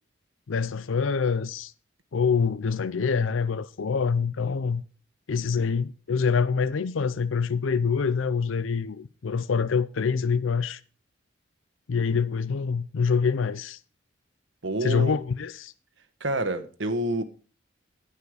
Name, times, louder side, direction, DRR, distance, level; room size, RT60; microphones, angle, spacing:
voice 1, 0.5-1.7 2.1-4.8 5.3-10.8 11.9-13.8 14.8-15.7, left 5 dB, 75° left, 0.5 m, -25 dB
voice 2, 14.6-15.2 16.2-17.2, right 1 dB, 65° right, 1.2 m, -28 dB
16.0 x 5.5 x 4.9 m
head